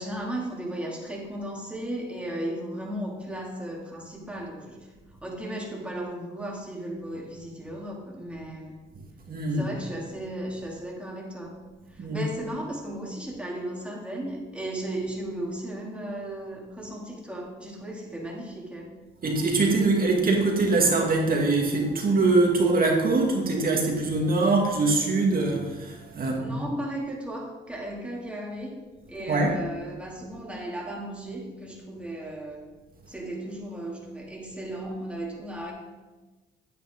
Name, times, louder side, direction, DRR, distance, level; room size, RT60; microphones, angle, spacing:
voice 1, 0.0-4.9 5.2-8.8 9.5-11.6 11.9-18.9 26.2-32.7 33.1-35.7, right 1 dB, 5° right, -3 dB, 2.6 m, -35 dB
voice 2, 9.3-9.7 12.0-12.2 19.2-26.6 29.3-29.5, right 3 dB, 45° right, 0 dB, 2.1 m, -23 dB
8.8 x 8.8 x 3.7 m, 1.2 s
cardioid pair, 90°, 20 cm